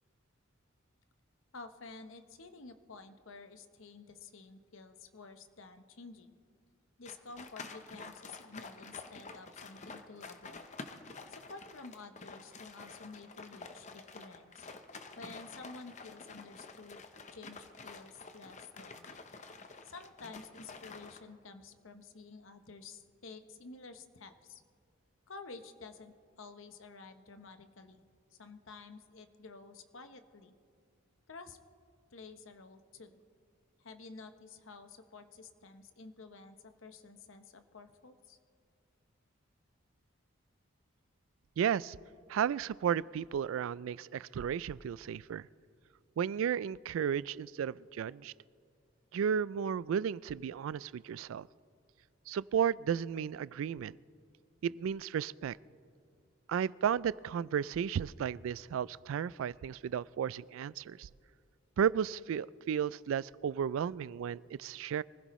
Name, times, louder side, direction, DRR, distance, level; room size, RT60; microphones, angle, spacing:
voice 1, 1.5-6.4 7.0-10.7 11.3-14.7 15.2-17.0 17.3-19.2 19.8-24.6 25.3-28.0 28.3-30.6 31.3-31.6 32.1-33.2 33.8-38.4, left 4 dB, 80° left, 9 dB, 0.9 m, -51 dB
sound 1, 7.0-21.2, left 3 dB, 35° left, 0.8 m, -49 dB
voice 2, 41.6-42.0 42.3-45.5 46.2-48.3 49.1-51.5 52.3-53.9 54.6-55.6 56.5-61.1 61.8-65.0, right 8 dB, 80° right, 21 dB, 0.3 m, -33 dB
24.5 x 15.5 x 3.1 m, 2.2 s
head